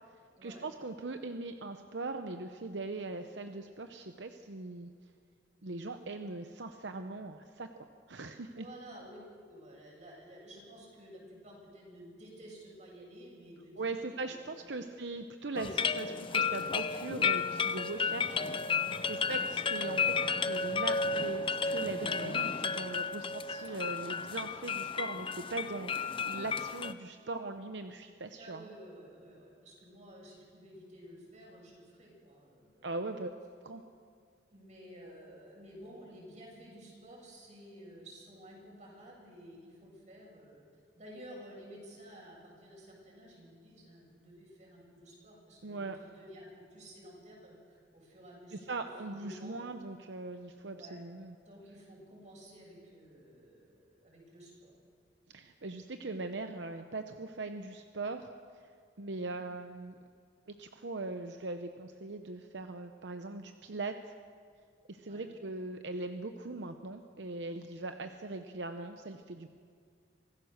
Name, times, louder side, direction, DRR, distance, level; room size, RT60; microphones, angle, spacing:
voice 1, 0.4-4.9 5.6-8.7 13.8-18.4 19.0-20.1 20.5-28.6 32.8-33.3 33.6-33.8 45.6-46.0 48.5-51.3 55.3-58.3 59.0-59.9 60.5-64.0 64.9-69.5, right 3 dB, 80° right, 7 dB, 0.8 m, -40 dB
voice 2, 8.5-14.3 14.6-14.9 15.8-16.0 18.0-18.7 19.0-19.2 28.4-32.9 34.5-40.6 41.0-49.6 50.7-51.0 51.4-54.7 65.1-65.3, equal, 45° right, -2 dB, 7.1 m, -52 dB
sound 1, 15.5-26.9, left 5 dB, 30° left, 0.6 m, -33 dB
25.0 x 16.0 x 6.6 m, 2.1 s
head